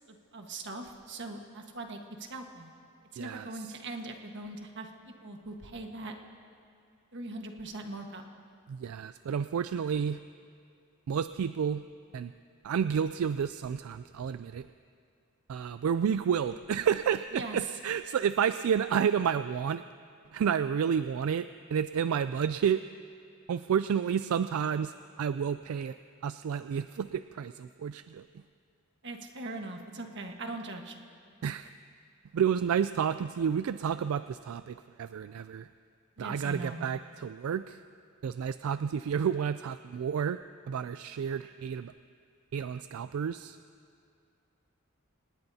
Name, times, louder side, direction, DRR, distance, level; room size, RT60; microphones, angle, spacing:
voice 1, 0.1-2.7 3.1-4.9 5.2-6.1 7.1-8.2 17.3-17.7 29.0-31.0 36.2-36.9, right 2 dB, 55° right, 3 dB, 1.4 m, -40 dB
voice 2, 3.2-3.5 8.7-10.2 11.1-11.8 12.1-12.3 12.6-14.7 15.5-19.8 20.3-22.8 23.5-26.0 26.2-28.2 31.4-31.7 32.3-35.7 36.2-37.8 38.2-40.4 40.7-41.9 42.5-43.6, right 7 dB, 75° right, 12 dB, 0.3 m, -30 dB
26.5 x 19.5 x 2.8 m, 2.4 s
head